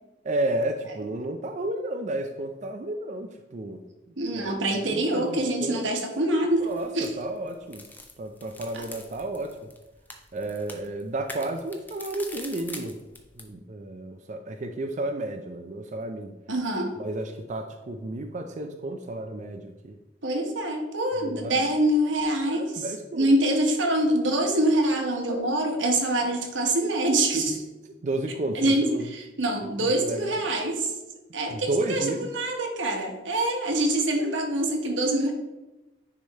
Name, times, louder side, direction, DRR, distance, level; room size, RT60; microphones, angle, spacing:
voice 1, 0.2-3.8 4.3-5.9 6.6-7.8 8.2-9.6 10.3-13.0 13.4-16.4 17.0-20.0 21.2-21.6 22.4-23.3 28.0-29.0 29.8-30.4 31.5-32.3 33.3-33.5, right 1 dB, 40° right, 5 dB, 0.4 m, -32 dB
voice 2, 4.2-6.7 6.9-7.1 8.7-8.8 16.5-17.0 20.2-22.9 23.1-27.6 28.5-30.9 31.3-35.3, right 1 dB, 90° right, 3 dB, 1.2 m, -25 dB
sound 1, 6.5-13.5, left 2 dB, 10° left, 0.6 m, -45 dB
9.8 x 3.3 x 4.1 m, 1.0 s
head